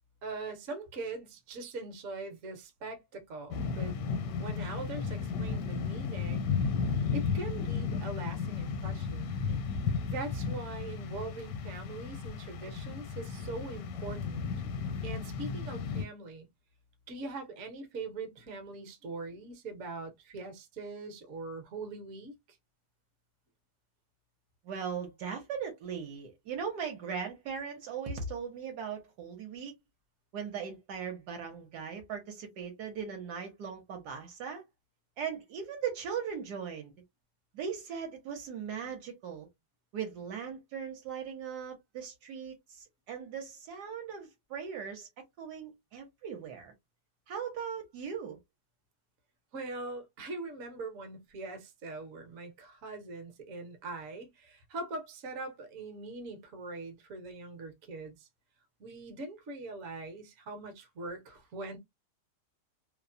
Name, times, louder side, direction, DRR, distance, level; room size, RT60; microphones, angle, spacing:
voice 1, 0.2-4.0 4.4-6.5 7.1-9.3 10.0-14.4 15.0-16.5 17.1-22.3 49.5-58.3 58.8-61.8, right 3 dB, 55° right, 1.0 m, -42 dB
sound 1, 3.5-16.1, left 5 dB, 80° left, 1.2 m, -34 dB
voice 2, 24.6-29.7 30.3-34.6 35.2-36.9 37.5-39.5 39.9-45.1 45.4-46.7 47.3-48.4, right 7 dB, 75° right, 1.2 m, -39 dB
2.9 x 2.0 x 2.4 m
omnidirectional pair, 1.8 m